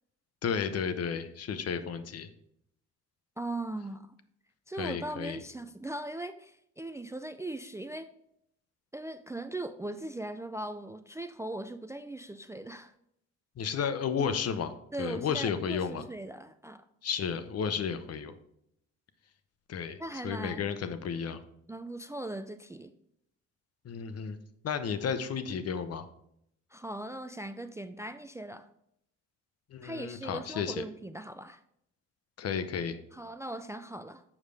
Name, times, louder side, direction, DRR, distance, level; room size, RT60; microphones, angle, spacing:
voice 1, 0.4-2.3 4.8-5.4 13.6-14.7 15.0-16.0 17.0-18.4 19.7-20.0 20.2-21.4 23.8-24.4 24.6-26.1 29.7-30.8 32.4-33.0, left 6 dB, 55° left, 11 dB, 0.8 m, -32 dB
voice 2, 3.4-4.1 4.7-8.1 8.9-12.9 14.9-16.8 20.0-20.7 21.7-22.9 26.7-28.7 29.8-31.6 33.1-34.2, right 1 dB, 10° right, 11 dB, 0.3 m, -39 dB
7.3 x 6.4 x 3.4 m, 0.74 s
cardioid pair, 90°, 30 cm